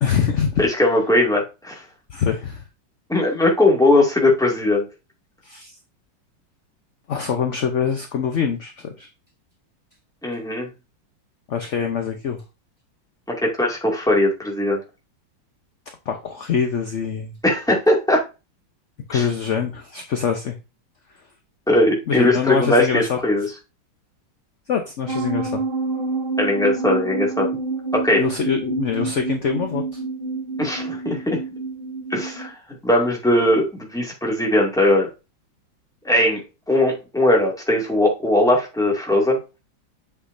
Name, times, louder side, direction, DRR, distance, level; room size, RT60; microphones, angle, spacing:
voice 1, 0.0-0.6 2.1-2.6 5.4-5.8 7.1-9.1 11.5-12.4 16.1-17.4 19.1-20.6 22.1-23.2 24.7-25.6 28.2-30.0, left 7 dB, 55° left, 5 dB, 0.8 m, -24 dB
voice 2, 0.6-1.8 3.1-4.9 10.2-10.7 13.4-14.8 17.4-18.2 19.1-19.3 21.7-23.5 26.4-27.5 27.9-28.2 30.6-31.4 32.1-32.6 32.8-35.1 36.1-36.4 36.7-39.4, left 1 dB, ahead, -2 dB, 2.0 m, -19 dB
sound 1, 25.1-32.5, right 3 dB, 60° right, 2.3 m, -27 dB
8.0 x 6.0 x 2.6 m, 0.27 s
omnidirectional pair, 2.1 m